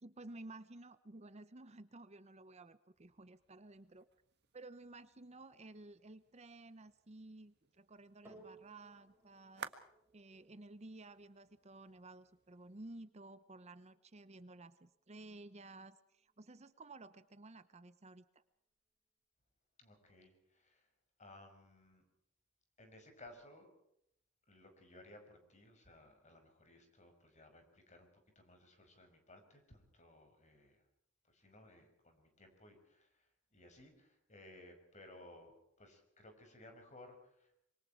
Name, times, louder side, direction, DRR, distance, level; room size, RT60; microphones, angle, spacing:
voice 1, 0.0-4.1 4.5-9.7 10.1-18.4, right 2 dB, 35° right, 13 dB, 0.9 m, -54 dB
sound 1, 2.9-13.0, right 6 dB, 55° right, 1.7 m, -58 dB
sound 2, 8.2-16.8 17.5-17.6, right 2 dB, 10° right, 6.1 m, -66 dB
voice 2, 19.8-20.9 21.2-22.0 22.8-23.7 24.5-30.9 31.2-37.5, left 1 dB, 35° left, 5 dB, 5.8 m, -59 dB
26.0 x 24.0 x 4.6 m, 0.77 s
head